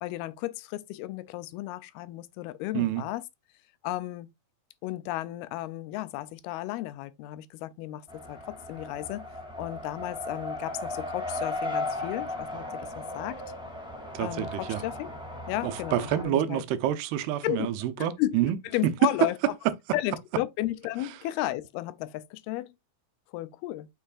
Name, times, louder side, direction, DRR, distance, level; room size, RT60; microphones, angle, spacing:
voice 1, 0.0-3.2 3.8-4.3 4.8-8.0 8.3-9.2 9.6-13.4 14.2-15.1 15.5-16.6 17.4-17.7 18.0-18.4 18.6-19.4 19.9-22.7 23.3-23.9, left 16 dB, 85° left, 2.5 m, -33 dB
Race car auto racing, 8.1-16.2, left 2 dB, ahead, 1.1 m, -36 dB
voice 2, 14.1-14.8 15.6-18.6 18.8-18.9 19.7-19.8, right 12 dB, 85° right, 2.8 m, -28 dB
6.9 x 6.3 x 2.4 m
omnidirectional pair, 4.5 m